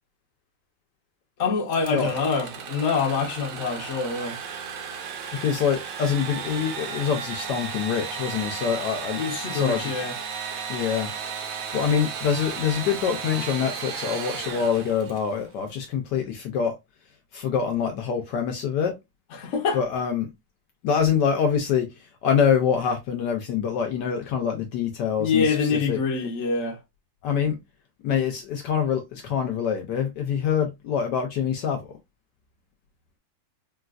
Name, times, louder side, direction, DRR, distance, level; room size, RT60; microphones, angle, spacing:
voice 1, 1.4-4.4 9.2-10.2 19.3-19.8 25.2-26.8, left 5 dB, 50° left, 0.9 m, -25 dB
Engine / Sawing, 1.7-15.4, right 6 dB, 75° right, 0.7 m, -34 dB
voice 2, 5.3-9.2 9.5-9.9 10.7-11.1 11.7-16.7 17.3-19.0 19.7-20.3 20.8-21.9 22.2-26.0 27.2-27.6 28.0-32.0, left 7 dB, 70° left, 1.1 m, -25 dB
3.9 x 2.3 x 2.3 m
omnidirectional pair, 2.1 m